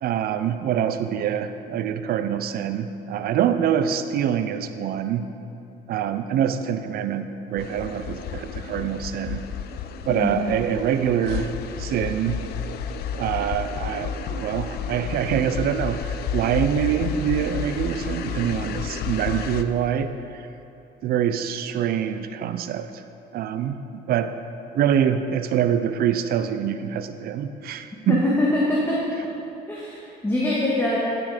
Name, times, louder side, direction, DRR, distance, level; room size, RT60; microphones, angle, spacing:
voice 1, 0.0-5.3 5.9-9.4 10.1-11.5 11.8-12.4 13.2-20.4 21.0-23.0 23.3-23.8 24.1-24.3 24.7-28.2, right 9 dB, 65° right, 10 dB, 0.6 m, -25 dB
sound 1, 7.6-19.6, left 6 dB, 70° left, 0.5 m, -31 dB
voice 2, 10.1-10.4 28.1-29.0 29.7-31.0, left 1 dB, 15° left, -7 dB, 1.7 m, -23 dB
12.0 x 6.1 x 5.0 m, 2.9 s
cardioid pair, 110°, 17 cm